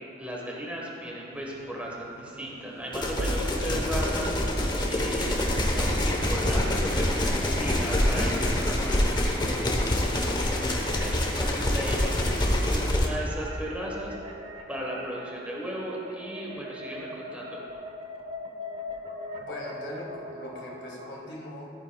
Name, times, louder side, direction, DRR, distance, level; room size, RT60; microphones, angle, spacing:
voice 1, 0.2-4.4 4.9-10.7 11.0-17.6, equal, 10° right, -3 dB, 1.3 m, -36 dB
sound 1, 1.3-12.4, right 1 dB, 55° right, 0.5 m, -41 dB
sound 2, 2.9-13.1, left 1 dB, 25° left, 1.0 m, -26 dB
sound 3, 13.1-21.3, left 2 dB, 35° right, 0.8 m, -41 dB
voice 2, 19.4-21.7, left 1 dB, 80° left, -3 dB, 1.8 m, -40 dB
14.0 x 9.5 x 2.3 m, 2.7 s
head